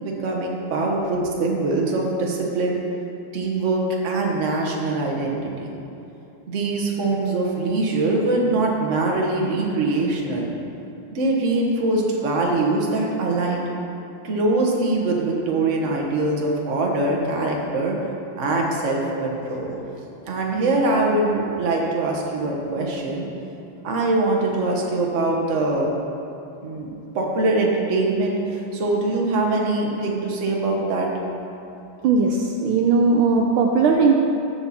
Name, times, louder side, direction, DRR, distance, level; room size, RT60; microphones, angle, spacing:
voice 1, 0.0-2.8 3.3-5.7 6.5-10.5 11.1-13.7 14.2-17.9 18.4-19.8 20.2-23.3 23.8-25.9 26.6-31.1, right 2 dB, 40° right, -1 dB, 1.3 m, -23 dB
voice 2, 32.0-34.1, right 4 dB, 75° right, 1 dB, 1.4 m, -18 dB
13.5 x 5.9 x 4.2 m, 2.9 s
omnidirectional pair, 2.4 m